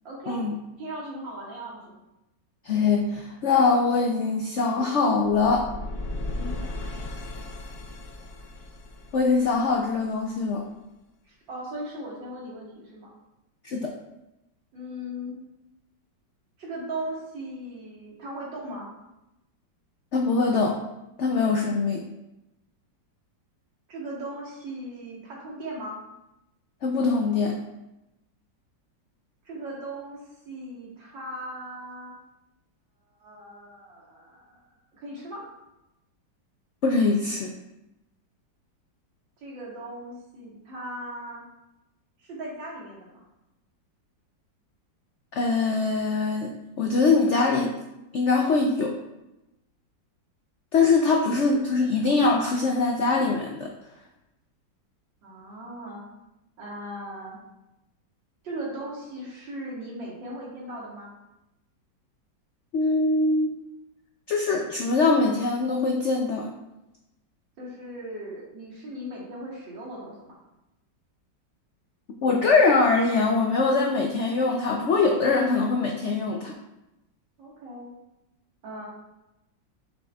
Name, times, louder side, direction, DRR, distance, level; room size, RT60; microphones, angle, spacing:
voice 1, 0.0-0.4 0.8-2.0 6.3-6.6 11.3-13.1 14.7-15.3 16.6-18.9 23.9-26.0 29.4-30.2 30.5-32.2 33.2-34.6 35.0-35.4 39.4-41.4 42.2-43.2 55.2-56.0 56.6-57.4 58.4-61.1 67.6-70.4 77.4-77.9 78.6-78.9, right 1 dB, 85° right, -4 dB, 2.4 m, -38 dB
voice 2, 2.6-5.6 9.1-10.6 13.6-13.9 20.1-20.8 21.2-22.0 26.8-27.5 36.8-37.5 45.3-47.7 48.1-48.9 50.7-53.7 62.7-63.5 64.3-66.5 72.2-76.5, left 4 dB, 85° left, 1 dB, 0.6 m, -23 dB
sound 1, 5.3-10.3, left 1 dB, 60° left, 1.2 m, -36 dB
7.0 x 5.8 x 2.3 m, 0.93 s
omnidirectional pair, 2.0 m